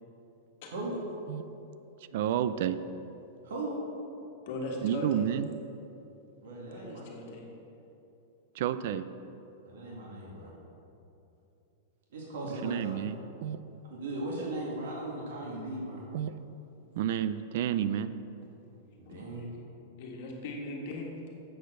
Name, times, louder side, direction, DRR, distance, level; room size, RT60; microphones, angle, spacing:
voice 1, 0.7-1.0 3.4-3.8 6.4-7.1 9.7-10.5 12.1-13.1 13.9-16.0 19.0-19.4, right 2 dB, 75° right, -4 dB, 2.1 m, -37 dB
voice 2, 2.1-2.8 4.8-5.5 8.5-9.1 12.6-13.2 13.4-13.6 16.1-16.3 17.0-18.1, right 10 dB, 50° right, 13 dB, 0.3 m, -30 dB
voice 3, 4.5-5.3 6.7-7.5 13.6-13.8 19.0-19.2 20.0-21.1, left 2 dB, 45° left, -1 dB, 1.5 m, -39 dB
7.7 x 6.7 x 6.4 m, 2.9 s
supercardioid pair, 175°, 0 cm